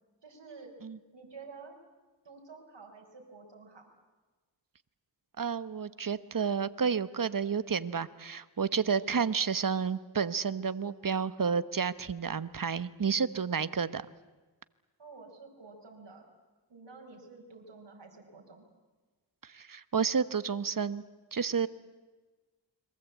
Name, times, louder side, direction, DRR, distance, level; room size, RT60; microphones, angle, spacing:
voice 1, 0.2-0.7 1.1-1.8 2.2-3.9 15.0-16.2 16.7-18.6, right 4 dB, 60° right, 1 dB, 5.1 m, -50 dB
voice 2, 5.4-14.0 19.4-21.0 21.3-21.7, right 6 dB, 45° right, 15 dB, 1.1 m, -30 dB
29.5 x 22.5 x 8.3 m, 1.3 s
cardioid pair, 50°, 47 cm